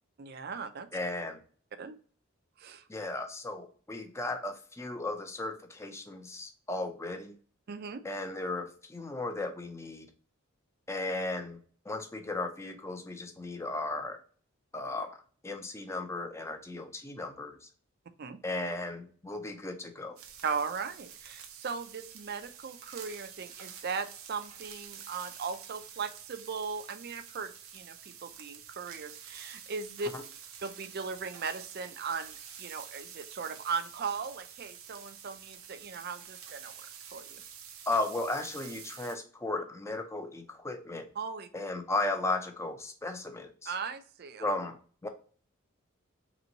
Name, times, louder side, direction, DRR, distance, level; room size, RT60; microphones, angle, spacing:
voice 1, 0.2-0.9 1.8-2.0 2.6-2.8 7.7-8.0 18.2-18.4 20.4-30.1 30.6-36.8 37.1-37.4 41.2-41.5 43.7-44.5, right 5 dB, 50° right, 10 dB, 0.4 m, -38 dB
voice 2, 0.9-1.4 2.9-7.4 8.0-10.1 10.9-11.6 11.8-14.2 14.7-17.7 18.4-20.2 30.1-30.2 37.9-41.1 41.5-43.7 44.4-45.1, left 2 dB, 15° left, 6 dB, 0.5 m, -35 dB
sound 1, 20.2-39.2, right 8 dB, 90° right, 0.7 m, -48 dB
3.3 x 3.1 x 3.9 m, 0.43 s
head